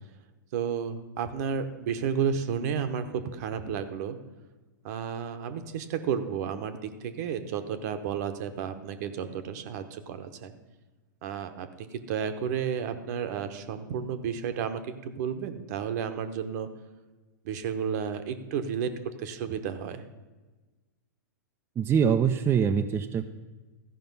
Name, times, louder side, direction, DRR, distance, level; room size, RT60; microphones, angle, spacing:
voice 1, 0.5-4.2 4.8-10.5 11.2-16.7 17.4-20.0, right 7 dB, 55° right, 9 dB, 1.0 m, -32 dB
voice 2, 21.8-23.3, right 7 dB, 20° right, 6 dB, 0.5 m, -24 dB
14.0 x 5.5 x 5.4 m, 1.2 s
hypercardioid pair, 110°, 11 cm